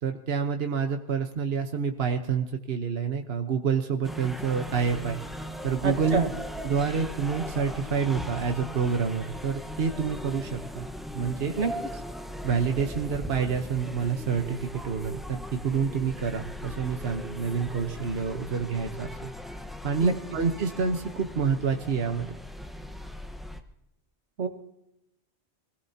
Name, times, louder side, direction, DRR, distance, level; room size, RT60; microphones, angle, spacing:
voice 1, 0.0-5.2 5.6-6.3 6.6-10.9 11.1-11.5 12.4-19.3 19.8-22.3, right 6 dB, 65° right, 5 dB, 1.3 m, -28 dB
sound 1, 4.0-23.6, equal, ahead, 1.1 m, -39 dB
voice 2, 5.8-6.3 11.6-11.7 20.0-20.1 24.4-24.5, right 5 dB, 85° right, 5 dB, 1.9 m, -26 dB
25.5 x 17.5 x 2.9 m, 0.87 s
omnidirectional pair, 1.1 m